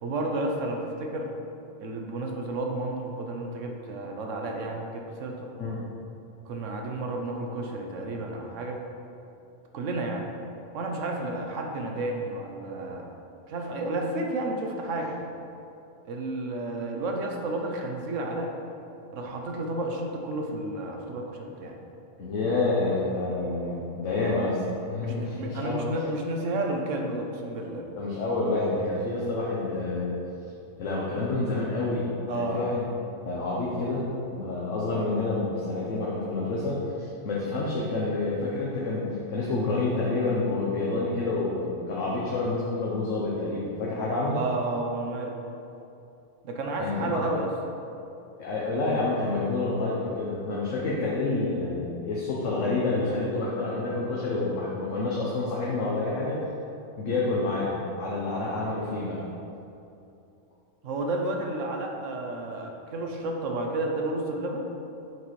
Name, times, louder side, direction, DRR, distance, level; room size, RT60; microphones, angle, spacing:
voice 1, 0.0-1.3 1.8-5.5 6.5-8.8 9.7-10.3 10.7-13.1 13.5-15.2 16.0-18.5 19.1-21.7 25.0-27.9 32.3-32.6 44.3-45.4 46.4-47.5 58.6-58.7 60.8-64.7, right 2 dB, 80° right, 2 dB, 1.1 m, -31 dB
voice 2, 22.2-24.6 24.9-25.8 28.0-30.1 30.8-32.1 32.3-32.9 33.2-44.4 46.8-47.2 48.4-56.4 57.0-59.3, left 3 dB, 80° left, -5 dB, 1.2 m, -28 dB
7.2 x 6.0 x 3.1 m, 2.7 s
omnidirectional pair, 1.3 m